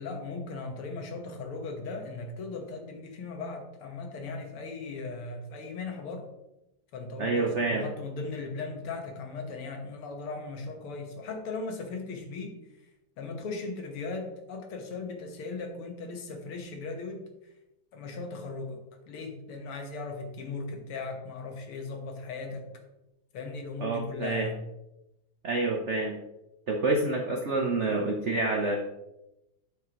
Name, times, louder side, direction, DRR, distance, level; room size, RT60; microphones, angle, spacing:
voice 1, 0.0-6.3 6.9-12.6 13.2-17.2 17.9-22.7 23.3-24.6, left 3 dB, 80° left, 3 dB, 2.2 m, -38 dB
voice 2, 7.2-7.8 23.8-24.5 25.4-26.2 26.7-28.8, right 3 dB, 80° right, 2 dB, 0.6 m, -28 dB
8.6 x 6.7 x 2.9 m, 0.92 s
omnidirectional pair, 2.4 m